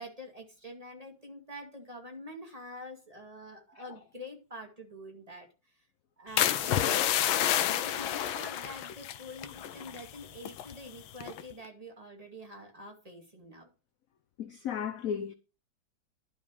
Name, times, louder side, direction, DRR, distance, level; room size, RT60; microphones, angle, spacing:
voice 1, 0.0-5.5 5.7-5.8 6.2-6.9 7.7-13.7, equal, 20° right, 2.2 m, -46 dB
sound 1, 6.4-10.7 11.2-11.5, left 11 dB, 90° left, 1.6 m, -29 dB
voice 2, 14.4-15.3, left 8 dB, 70° left, 0.8 m, -34 dB
11.0 x 6.1 x 5.0 m
omnidirectional pair, 2.2 m